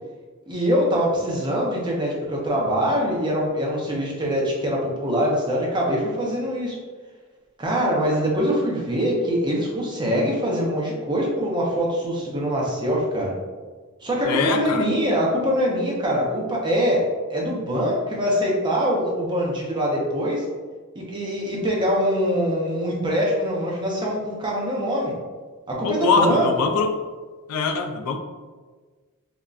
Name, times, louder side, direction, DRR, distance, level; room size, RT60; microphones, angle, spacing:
voice 1, 0.5-6.8 7.6-13.3 14.0-17.0 17.3-20.4 21.0-25.1 25.7-26.5, equal, 20° right, -3 dB, 0.5 m, -23 dB
voice 2, 14.2-14.9 25.8-27.0 27.5-28.2, left 4 dB, 85° left, 5 dB, 0.3 m, -22 dB
3.6 x 2.1 x 2.3 m, 1.4 s
head